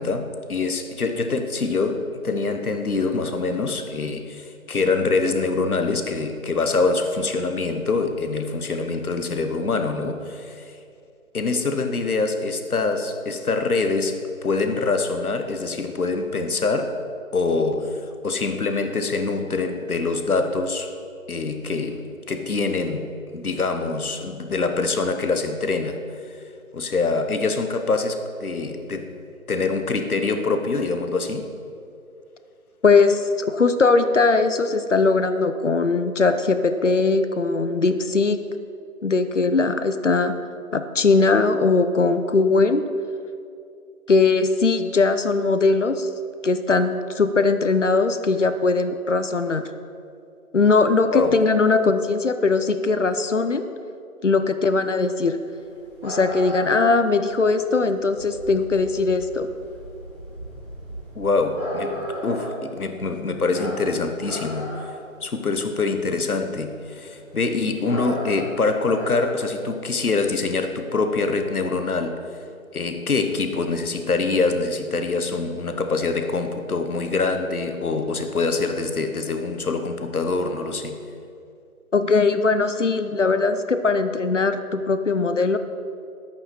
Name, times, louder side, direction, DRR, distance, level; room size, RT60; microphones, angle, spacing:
voice 1, 0.0-10.8 11.3-17.0 17.3-20.9 21.3-26.0 26.7-29.1 29.5-31.5 51.1-51.4 61.1-64.8 65.2-72.2 72.7-81.0, left 3 dB, 80° left, 7 dB, 1.2 m, -25 dB
voice 2, 32.8-38.4 39.0-40.4 40.7-42.8 44.1-46.1 46.4-49.6 50.5-53.7 54.2-55.4 56.0-59.5 81.9-85.6, left 4 dB, 55° left, 10 dB, 0.6 m, -20 dB
sound 1, 55.5-69.2, equal, 5° right, 1.8 m, -35 dB
10.5 x 8.6 x 4.4 m, 2.5 s
figure-of-eight pair, 175°, 43 cm